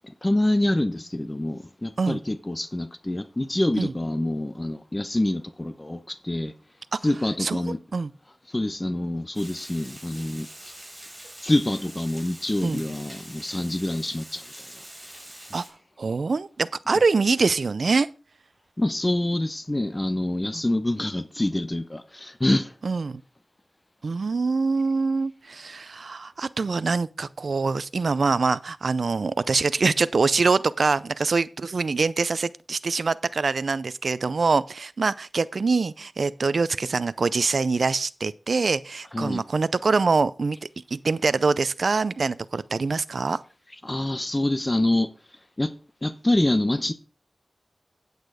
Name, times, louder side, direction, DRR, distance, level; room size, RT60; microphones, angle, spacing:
voice 1, 0.2-6.5 7.0-7.8 8.5-10.5 11.4-14.4 18.8-22.7 39.1-39.4 43.8-45.1 45.6-45.7 46.0-46.9, left 1 dB, 25° left, 0.9 m, -26 dB
Water, 9.3-15.7, right 1 dB, 15° right, 4.5 m, -44 dB
voice 2, 16.0-18.1 20.5-20.6 22.8-23.2 24.0-40.6 40.9-43.4, right 4 dB, 75° right, 0.4 m, -24 dB
8.9 x 8.1 x 4.8 m
cardioid pair, 50°, 0 cm